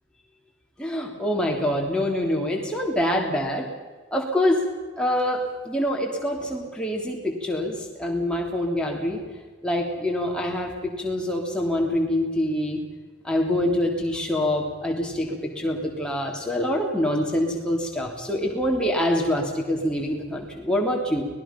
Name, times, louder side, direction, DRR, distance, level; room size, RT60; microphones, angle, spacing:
voice 1, 0.8-3.7 4.1-4.6 5.0-9.2 9.6-12.8 13.2-21.3, left 1 dB, 5° left, -1 dB, 3.1 m, -25 dB
24.0 x 20.0 x 5.9 m, 1.4 s
head